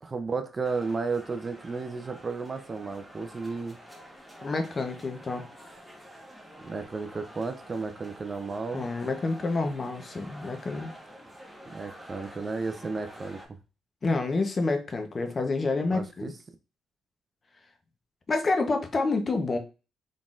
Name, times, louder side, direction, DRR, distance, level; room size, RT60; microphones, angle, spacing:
voice 1, 0.0-3.8 6.6-8.9 11.7-13.6 15.9-16.3, right 4 dB, 30° right, 9 dB, 0.5 m, -33 dB
sound 1, 0.6-13.5, equal, 5° right, 1.1 m, -48 dB
voice 2, 4.4-5.5 8.7-10.9 14.0-16.3 18.3-19.6, left 3 dB, 35° left, 6 dB, 0.8 m, -28 dB
3.8 x 3.7 x 2.4 m, 0.31 s
cardioid pair, 90°, 0 cm